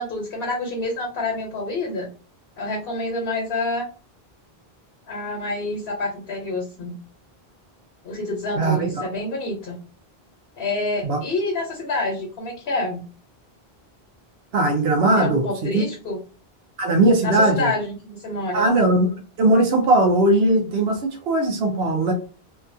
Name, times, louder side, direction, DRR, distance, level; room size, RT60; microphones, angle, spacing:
voice 1, 0.0-2.1 2.6-3.9 5.1-7.0 8.0-9.8 10.6-13.0 15.2-16.2 17.2-18.6, left 2 dB, 70° left, 1 dB, 1.0 m, -27 dB
voice 2, 8.6-9.1 11.0-11.2 14.5-15.8 16.8-17.7 18.5-19.1 19.4-22.1, right 2 dB, 80° right, 2 dB, 1.0 m, -19 dB
2.8 x 2.3 x 2.6 m, 0.36 s
omnidirectional pair, 1.1 m